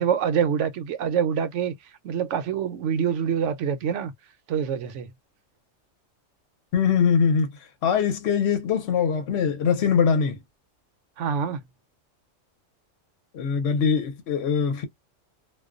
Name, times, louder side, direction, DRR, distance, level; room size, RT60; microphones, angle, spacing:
voice 1, 0.0-1.8 2.0-4.1 4.5-5.1 11.2-11.6, right 7 dB, 70° right, 0.9 m, -25 dB
voice 2, 6.7-7.5 7.8-10.4 13.3-14.8, left 6 dB, 60° left, 1.0 m, -22 dB
2.4 x 2.2 x 2.4 m
omnidirectional pair, 1.3 m